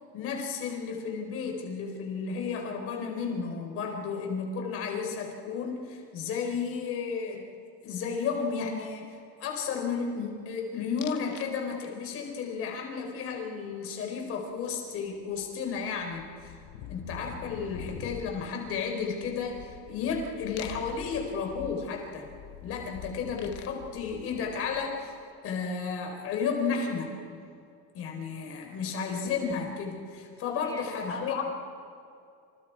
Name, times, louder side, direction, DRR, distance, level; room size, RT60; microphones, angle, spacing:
voice 1, 0.1-7.4 7.8-16.5 16.9-22.2 22.6-25.1 25.4-27.1 27.9-31.4, left 5 dB, 40° left, 2 dB, 4.7 m, -33 dB
sound 1, 11.0-11.5 11.8-12.3 14.7-14.8 15.1-25.1, left 9 dB, 60° left, 1.9 m, -45 dB
voice 2, 30.4-31.1, left 2 dB, 10° left, -2 dB, 3.8 m, -44 dB
28.5 x 28.5 x 4.8 m, 2.4 s
cardioid pair, 165°, 35 cm